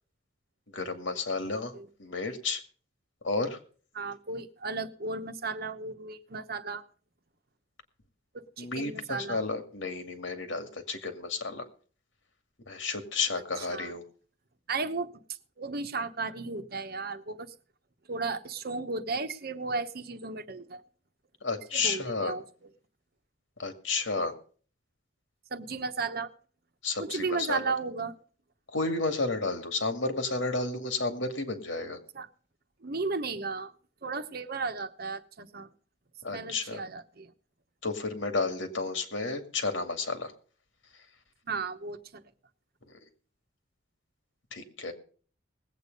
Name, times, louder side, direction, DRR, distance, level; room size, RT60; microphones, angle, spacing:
voice 1, 0.7-1.7 2.0-2.6 3.2-3.6 8.6-11.6 12.7-14.0 21.4-22.3 23.6-24.3 26.8-27.7 28.7-32.0 36.2-36.8 37.8-40.3 42.9-43.0 44.5-44.9, left 3 dB, 80° left, 8 dB, 2.2 m, -32 dB
voice 2, 3.9-6.8 8.3-9.4 13.6-13.9 14.7-15.2 15.6-17.5 18.1-20.8 21.7-22.4 25.5-26.3 27.0-28.1 32.1-32.3 32.8-33.7 34.0-35.7 36.3-37.3 41.5-42.2, right 4 dB, 55° right, 9 dB, 1.0 m, -34 dB
19.5 x 8.4 x 5.3 m, 0.43 s
head